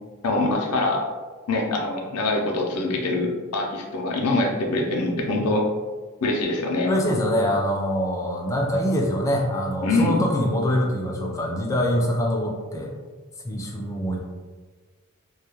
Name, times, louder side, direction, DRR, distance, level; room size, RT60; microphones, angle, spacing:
voice 1, 0.2-1.0 1.5-5.7 6.2-6.9 9.8-10.1, left 2 dB, 80° left, 1 dB, 0.4 m, -24 dB
voice 2, 6.8-12.9 13.4-14.2, equal, 15° left, 0 dB, 0.3 m, -24 dB
2.3 x 2.1 x 2.9 m, 1.4 s
head